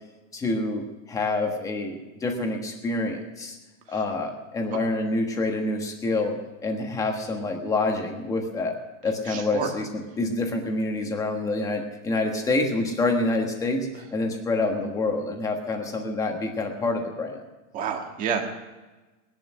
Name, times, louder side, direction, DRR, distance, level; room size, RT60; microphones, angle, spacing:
voice 1, 0.3-3.6 3.9-8.7 9.0-9.9 10.2-17.4, left 2 dB, 10° left, 3 dB, 1.3 m, -27 dB
voice 2, 9.2-9.7 17.7-18.4, right 7 dB, 20° right, 3 dB, 1.8 m, -29 dB
19.5 x 11.5 x 6.2 m, 1.2 s
supercardioid pair, 175°, 42 cm